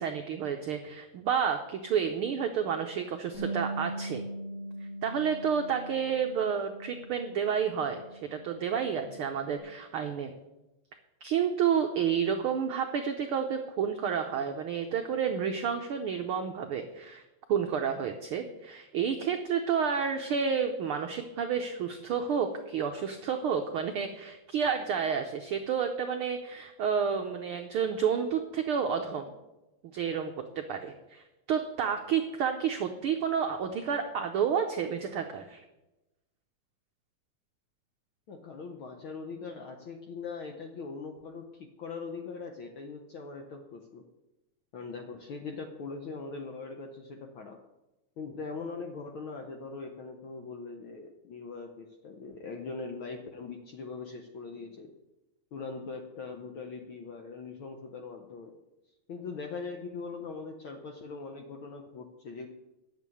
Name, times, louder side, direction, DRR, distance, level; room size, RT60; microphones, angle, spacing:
voice 1, 0.0-4.2 5.0-10.3 11.2-17.2 17.5-29.3 29.9-30.3 30.7-35.6, right 7 dB, 85° right, 5 dB, 1.1 m, -30 dB
Bass guitar, 3.3-9.6, right 1 dB, 30° left, 2.7 m, -41 dB
voice 2, 38.3-44.0 44.7-47.6 48.2-54.9 55.5-58.6 59.1-62.5, left 4 dB, 70° left, 3 dB, 1.2 m, -41 dB
10.0 x 6.9 x 8.4 m, 1.0 s
omnidirectional pair, 3.4 m